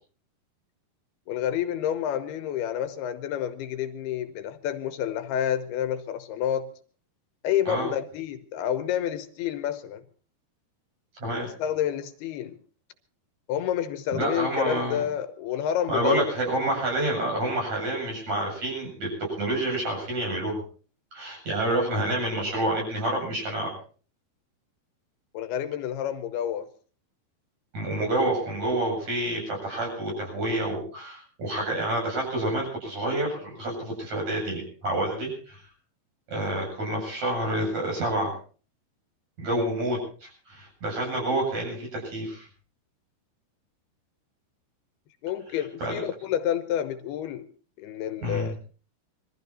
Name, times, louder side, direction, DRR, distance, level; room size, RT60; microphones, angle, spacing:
voice 1, 1.3-6.7 7.4-10.0 11.4-12.6 13.5-16.3 25.3-26.7 45.2-47.5 47.8-48.5, left 10 dB, 80° left, 2.8 m, -29 dB
voice 2, 14.1-15.0 15.9-20.6 21.1-23.7 27.7-35.6 36.3-38.3 39.4-42.5 45.8-46.0 48.2-48.5, right 1 dB, 45° right, 9.2 m, -28 dB
22.5 x 14.0 x 4.3 m
omnidirectional pair, 4.7 m